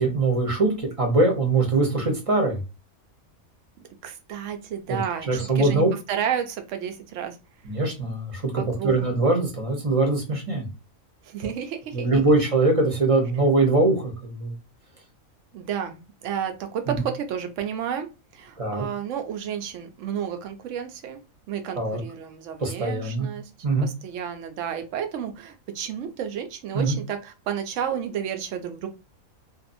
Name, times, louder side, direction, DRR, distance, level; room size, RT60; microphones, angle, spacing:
voice 1, 0.0-2.6 4.9-5.0 5.3-5.9 7.6-8.5 8.8-10.7 11.9-14.5 16.9-17.0 18.6-18.8 21.8-22.0 22.6-23.3 23.6-23.9 26.7-27.0, right 2 dB, 30° right, 1 dB, 0.8 m, -22 dB
voice 2, 4.0-5.8 6.1-7.4 8.6-9.1 11.2-12.2 15.5-21.2 21.5-23.5 23.8-28.9, right 8 dB, 70° right, 7 dB, 0.9 m, -31 dB
2.6 x 2.4 x 2.5 m, 0.29 s
omnidirectional pair, 1.4 m